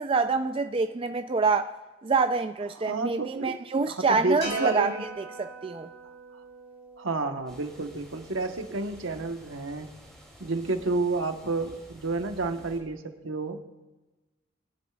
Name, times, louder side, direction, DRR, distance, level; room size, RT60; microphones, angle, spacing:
voice 1, 0.0-1.7 2.0-5.9, right 4 dB, 25° right, 0.3 m, -26 dB
voice 2, 2.8-3.6 3.9-5.0 7.0-9.9 10.4-13.6, right 3 dB, 80° right, 1.1 m, -30 dB
sound 1, 4.4-8.8, right 1 dB, 30° left, 4.0 m, -42 dB
sound 2, 7.5-12.8, equal, 5° left, 2.5 m, -51 dB
21.0 x 10.5 x 2.3 m
head